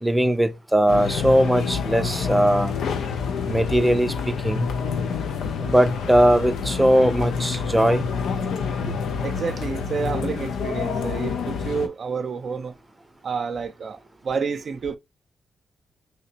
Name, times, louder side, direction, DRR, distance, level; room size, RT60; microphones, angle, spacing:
voice 1, 0.0-2.8 3.5-4.7 5.6-8.1 8.8-8.9, equal, 10° right, 0.7 m, -20 dB
sound 1, 0.9-11.9, left 5 dB, 75° left, 0.5 m, -27 dB
voice 2, 9.2-12.7 13.2-14.0 14.2-15.0, right 5 dB, 60° right, 0.4 m, -29 dB
3.3 x 2.8 x 2.8 m
supercardioid pair, 45°, 0 cm